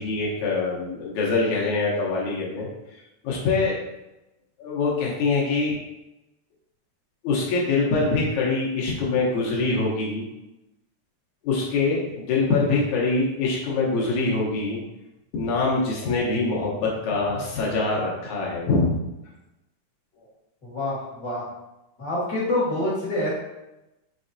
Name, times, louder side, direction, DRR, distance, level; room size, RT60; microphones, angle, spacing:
voice 1, 0.0-2.7 3.2-3.8 4.6-5.8 7.2-10.3 11.4-14.8 15.3-19.0, left 3 dB, 70° left, -4 dB, 2.1 m, -24 dB
voice 2, 20.6-21.4 22.0-23.3, left 1 dB, 45° left, -6 dB, 1.5 m, -26 dB
5.9 x 3.2 x 2.6 m, 0.96 s
omnidirectional pair, 3.8 m